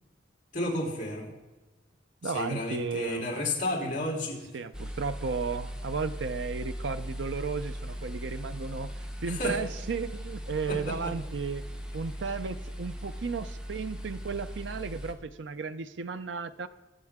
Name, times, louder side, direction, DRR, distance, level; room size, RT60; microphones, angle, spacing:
voice 1, 0.5-1.3 2.2-4.4 9.3-9.6 10.7-11.1, left 1 dB, 45° left, -1 dB, 3.7 m, -32 dB
voice 2, 2.2-3.4 4.5-8.9 9.2-11.6 11.9-16.7, right 5 dB, 80° right, 11 dB, 0.6 m, -34 dB
sound 1, 4.7-15.1, equal, 5° right, 1.0 m, -39 dB
21.0 x 7.6 x 3.6 m, 1.1 s
head